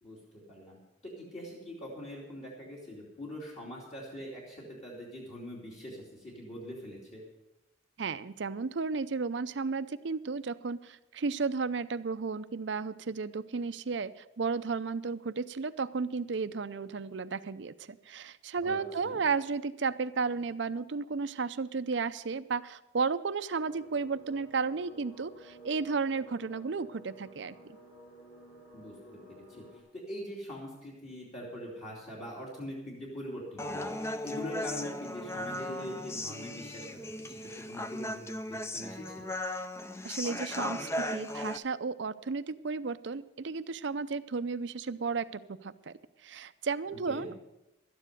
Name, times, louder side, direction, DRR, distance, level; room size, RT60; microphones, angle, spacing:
voice 1, 0.0-0.8 1.2-7.2 18.6-19.2 28.7-28.9 29.3-29.7 29.9-39.3 47.1-47.3, equal, 35° left, -5 dB, 2.8 m, -43 dB
voice 2, 8.0-27.8 40.0-45.9 46.2-47.4, right 4 dB, 65° right, 14 dB, 0.5 m, -33 dB
sound 1, 23.5-29.8, right 1 dB, 50° left, 6.3 m, -53 dB
Human voice, 33.6-41.6, left 1 dB, 15° left, 0.5 m, -37 dB
12.5 x 9.9 x 6.7 m, 0.95 s
head